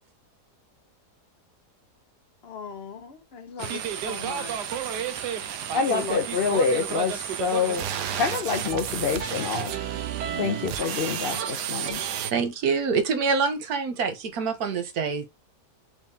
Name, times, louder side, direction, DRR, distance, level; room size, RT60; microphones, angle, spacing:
voice 1, 2.4-4.8 5.9-6.5, left 7 dB, 50° left, 0.9 m, -40 dB
sound 1, 3.6-12.3, right 9 dB, 90° right, 1.3 m, -31 dB
voice 2, 5.7-7.9 8.2-9.7 10.4-12.0, left 5 dB, 90° left, 0.5 m, -26 dB
voice 3, 12.3-15.3, right 5 dB, 70° right, 1.3 m, -26 dB
4.7 x 3.5 x 2.7 m
omnidirectional pair, 1.7 m